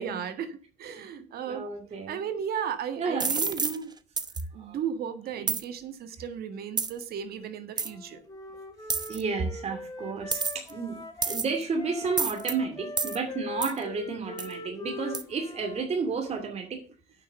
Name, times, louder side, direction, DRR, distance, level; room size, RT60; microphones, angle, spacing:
voice 1, 0.0-1.7 2.1-3.9 4.5-8.2, right 8 dB, 65° right, 9 dB, 1.7 m, -35 dB
voice 2, 1.5-2.2 3.0-3.3 4.6-4.8 5.4-5.5 9.1-11.0 11.2-16.8, right 4 dB, 40° right, 3 dB, 2.6 m, -32 dB
sound 1, 3.2-3.8 4.2-4.4 5.5-5.6 6.8-7.0 7.8-7.9 8.9-9.2 10.3-10.7 11.2-11.6 12.2-12.5 13.0-13.2 13.6-13.8 14.4-14.5 15.1-15.2, right 4 dB, 25° right, 0.9 m, -29 dB
Wind instrument woodwind instrument, 7.8-11.4 11.8-15.9, left 3 dB, 20° left, 2.6 m, -41 dB
8.8 x 6.7 x 6.9 m, 0.41 s
cardioid pair, 110°, 17 cm